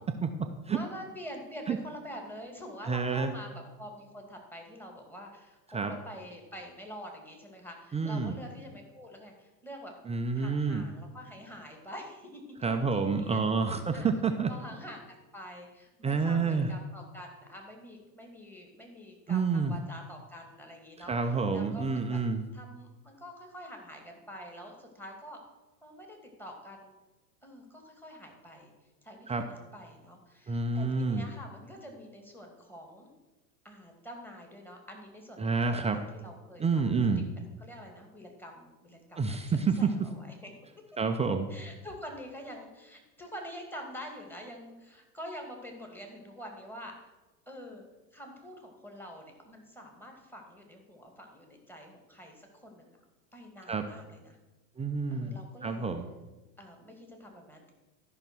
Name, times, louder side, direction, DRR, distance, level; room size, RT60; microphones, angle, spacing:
voice 1, 0.7-9.9 10.3-13.5 13.9-14.1 14.5-22.2 22.5-25.4 25.8-26.9 27.4-28.7 29.0-33.1 33.6-36.9 37.6-40.5 41.5-46.9 47.5-47.8 48.1-53.0 53.3-54.4 55.1-55.9 56.6-57.7, equal, 5° left, 2 dB, 2.3 m, -46 dB
voice 2, 2.9-3.3 5.7-5.9 7.9-8.4 10.1-10.9 12.6-14.5 16.0-16.7 19.3-19.7 21.1-22.4 29.3-29.5 30.5-31.2 35.4-36.0 36.6-37.3 39.2-39.9 41.0-41.5 53.7-53.8 54.8-55.4 55.6-56.1, right 4 dB, 15° right, 4 dB, 0.6 m, -28 dB
13.0 x 5.7 x 6.2 m, 1.1 s
hypercardioid pair, 95°, 50 cm